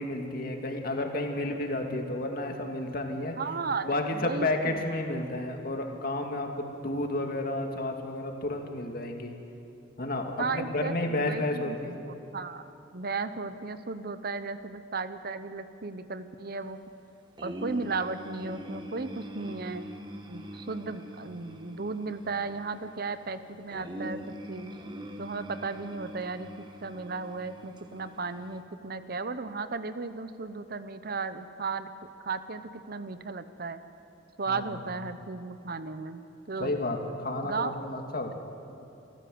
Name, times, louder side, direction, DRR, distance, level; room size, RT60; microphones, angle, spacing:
voice 1, 0.0-3.4 3.8-9.3 10.0-12.0 34.5-34.7 36.6-38.3, left 2 dB, 50° left, 3 dB, 2.2 m, -31 dB
voice 2, 3.4-4.9 5.2-5.3 10.4-12.0 12.3-12.6 12.9-16.8 17.4-19.8 20.3-24.7 25.2-31.9 32.2-33.8 34.4-36.2 36.5-36.8 37.4-37.8, right 4 dB, 50° right, 11 dB, 0.8 m, -35 dB
sound 1, 17.4-28.6, equal, 25° right, 1.4 m, -43 dB
26.5 x 14.5 x 7.9 m, 2.7 s
head